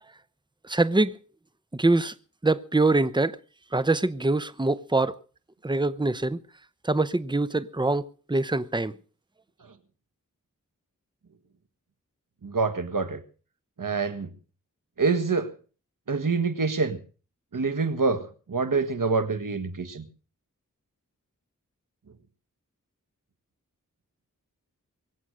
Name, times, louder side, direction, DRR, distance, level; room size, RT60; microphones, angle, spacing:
voice 1, 0.6-1.2 1.7-2.1 2.4-3.4 3.7-5.2 5.6-6.4 6.8-9.0, right 2 dB, 15° right, 0.9 m, -24 dB
voice 2, 12.4-13.2 13.8-14.3 15.0-15.5 16.1-17.0 17.5-20.0, right 4 dB, 75° right, 1.8 m, -26 dB
23.5 x 8.2 x 6.4 m
wide cardioid pair, 50°, 32 cm